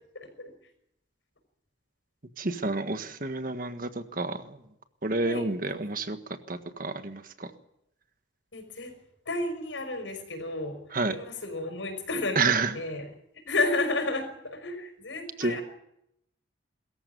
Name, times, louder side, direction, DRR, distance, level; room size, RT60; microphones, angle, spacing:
voice 1, 0.1-0.5 5.2-5.4 8.5-8.9 9.3-10.8 11.1-12.4 12.7-13.1 13.5-15.6, left 2 dB, 90° left, 7 dB, 5.6 m, -31 dB
voice 2, 2.4-4.6 5.0-6.2 6.5-7.5 10.9-11.2 12.3-12.8 15.4-15.6, right 3 dB, 50° right, 8 dB, 1.6 m, -29 dB
23.0 x 14.5 x 9.4 m, 0.80 s
head